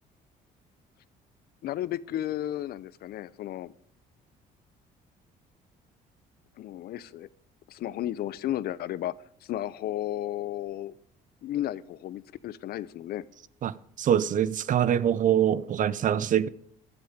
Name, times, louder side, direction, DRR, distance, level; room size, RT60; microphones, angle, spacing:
voice 1, 1.6-3.7 6.6-7.3 7.7-9.1 9.5-10.9 11.4-13.2, left 13 dB, 65° left, 0.8 m, -33 dB
voice 2, 13.6-16.5, right 10 dB, 50° right, 0.8 m, -24 dB
16.0 x 12.5 x 5.1 m
cardioid pair, 110°, 17 cm